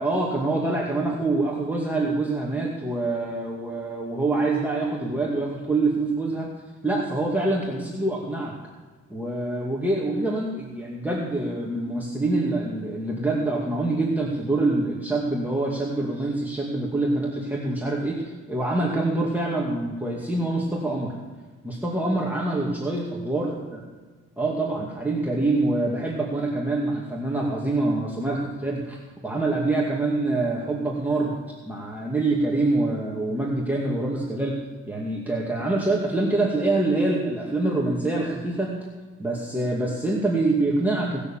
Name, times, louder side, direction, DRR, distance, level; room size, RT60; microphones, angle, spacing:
voice 1, 0.0-6.5 6.8-8.5 9.1-21.1 21.6-23.6 24.4-29.0 29.2-31.3 31.7-34.6 34.9-38.7 39.2-41.2, right 2 dB, 5° right, -4 dB, 2.3 m, -25 dB
18.5 x 6.9 x 7.3 m, 1.4 s
cardioid pair, 90°, 30 cm